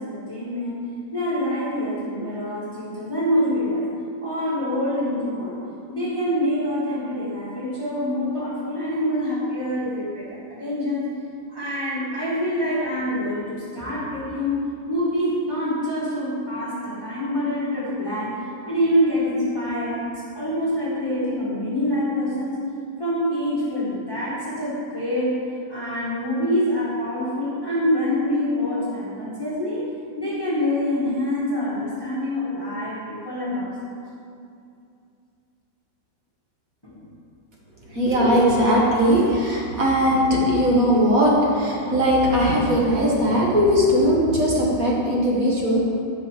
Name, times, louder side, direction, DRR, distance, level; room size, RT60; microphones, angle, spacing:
voice 1, 0.0-3.9 4.2-5.6 5.9-11.1 11.5-20.0 20.3-22.6 23.0-25.4 25.7-29.8 30.2-34.0 36.8-37.1, left 1 dB, 10° left, -9 dB, 1.7 m, -25 dB
voice 2, 37.9-45.8, equal, 45° right, -4 dB, 1.8 m, -19 dB
11.0 x 5.5 x 5.1 m, 2.5 s
omnidirectional pair, 2.1 m